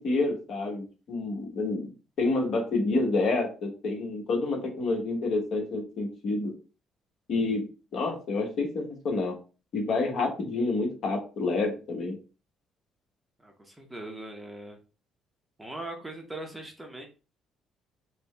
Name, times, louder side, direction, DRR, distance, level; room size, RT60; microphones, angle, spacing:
voice 1, 0.0-1.9 2.2-6.5 7.3-7.7 7.9-9.4 9.7-12.1, left 3 dB, 55° left, 1 dB, 1.2 m, -28 dB
voice 2, 13.4-14.8 15.6-17.1, right 2 dB, 10° right, 3 dB, 0.7 m, -40 dB
4.4 x 2.1 x 3.3 m, 0.33 s
cardioid pair, 135°, 0 cm